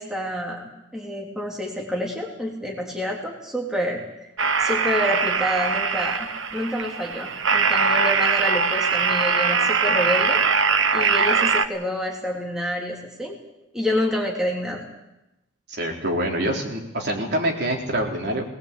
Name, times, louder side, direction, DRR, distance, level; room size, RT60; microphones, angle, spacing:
voice 1, 0.0-4.0 4.6-10.4 10.9-13.4 13.7-14.8, equal, 5° right, -1 dB, 2.9 m, -28 dB
sound 1, 4.4-11.6, right 5 dB, 80° right, 1.1 m, -21 dB
voice 2, 15.7-18.4, right 1 dB, 55° right, 0 dB, 3.9 m, -25 dB
20.5 x 19.5 x 8.4 m, 0.94 s
head